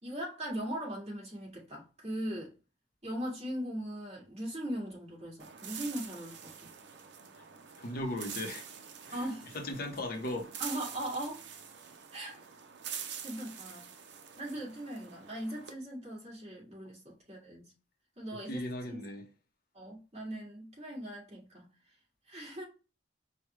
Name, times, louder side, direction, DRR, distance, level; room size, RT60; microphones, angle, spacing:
voice 1, 0.0-2.5 3.0-6.7 9.1-9.5 10.6-11.4 12.1-12.4 12.8-13.9 14.4-17.7 18.2-18.6 18.9-19.0 19.7-21.7 22.3-22.6, right 1 dB, 35° right, 2.2 m, -39 dB
sound 1, 5.4-15.7, right 7 dB, 65° right, 0.6 m, -46 dB
voice 2, 7.8-8.6 9.1-9.3 9.5-10.5 18.3-19.3, left 1 dB, 55° left, 0.8 m, -37 dB
4.7 x 2.2 x 3.1 m
head